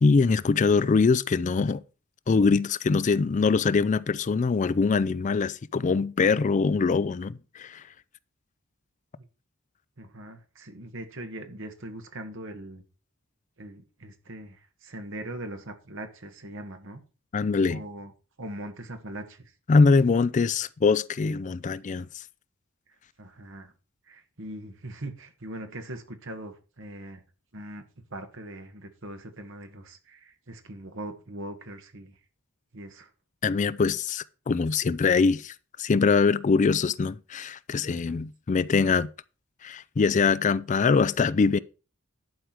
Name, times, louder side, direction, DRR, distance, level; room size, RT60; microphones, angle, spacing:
voice 1, 0.0-1.8 2.3-7.8 17.3-17.8 19.7-22.2 33.4-39.1 39.6-41.6, left 4 dB, 35° left, 0.4 m, -23 dB
voice 2, 10.0-12.8 13.6-17.0 17.7-18.1 18.4-19.4 23.2-23.7 24.1-27.2 27.5-27.9 28.1-32.1 32.7-33.1 37.9-38.1, right 1 dB, 65° right, 1.8 m, -41 dB
11.0 x 4.9 x 6.1 m
head